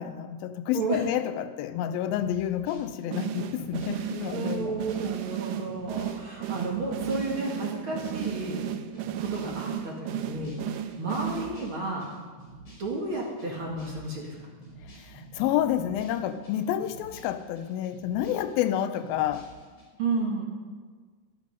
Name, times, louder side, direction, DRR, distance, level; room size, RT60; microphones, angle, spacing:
voice 1, 0.0-4.7 15.1-19.5, left 11 dB, 90° left, 11 dB, 2.5 m, -29 dB
sound 1, 2.1-19.8, right 2 dB, 45° left, 5.5 m, -50 dB
sound 2, 3.1-11.9, right 10 dB, 80° right, 2.0 m, -34 dB
voice 2, 4.0-8.6 9.2-12.0 12.8-14.3 20.0-20.4, right 3 dB, 40° right, -2 dB, 2.5 m, -32 dB
13.0 x 11.5 x 5.4 m, 1.5 s
omnidirectional pair, 4.1 m